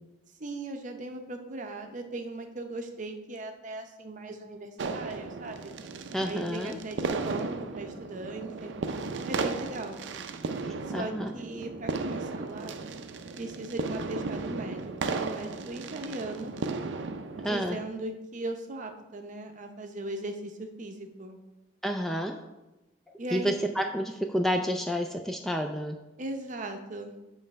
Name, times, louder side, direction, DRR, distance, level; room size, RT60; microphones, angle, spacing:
voice 1, 0.4-5.7 6.2-8.7 9.2-10.0 10.9-12.8 13.4-16.5 17.4-21.4 23.2-23.5 26.2-27.2, right 2 dB, 45° right, 5 dB, 0.7 m, -38 dB
sound 1, 4.8-17.9, right 4 dB, 80° right, 0.5 m, -35 dB
voice 2, 6.1-6.8 10.9-11.3 17.4-17.8 21.8-22.4 23.3-26.0, equal, ahead, 4 dB, 0.3 m, -29 dB
7.6 x 3.3 x 5.1 m, 1.0 s
head